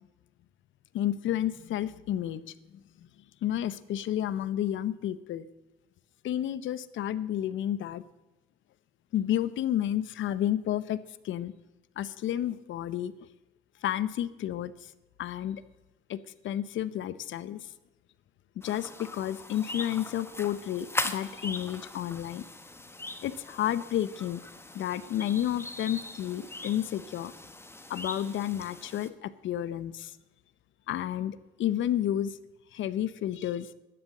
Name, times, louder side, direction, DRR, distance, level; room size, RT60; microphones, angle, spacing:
voice 1, 0.9-2.4 3.4-5.5 6.2-8.0 9.1-11.5 12.0-13.1 13.8-14.7 15.2-15.6 16.1-17.7 18.6-22.4 23.2-24.4 24.7-27.3 27.9-30.1 30.9-32.4 32.7-33.7, left 11 dB, 75° left, 16 dB, 0.8 m, -31 dB
sound 1, 18.6-29.1, left 2 dB, 10° left, 1.2 m, -40 dB
12.0 x 10.5 x 7.6 m, 1.0 s
cardioid pair, 90°, 20 cm